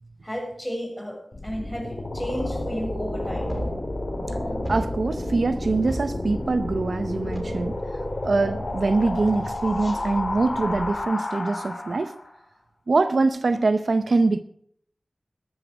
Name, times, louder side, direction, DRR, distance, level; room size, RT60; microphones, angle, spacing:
voice 1, 0.2-3.6, equal, ahead, 6.7 m, -33 dB
sound 1, 1.3-12.3, left 1 dB, 60° left, 4.7 m, -30 dB
sound 2, 3.0-3.1 3.5-4.4 4.6-5.4 5.9-7.4 7.8-8.3 8.6-10.0, right 1 dB, 25° right, 2.8 m, -37 dB
voice 2, 4.7-7.8 8.2-12.1 12.9-14.4, right 3 dB, 70° right, 0.6 m, -23 dB
13.0 x 12.5 x 5.1 m
wide cardioid pair, 50°, 0 cm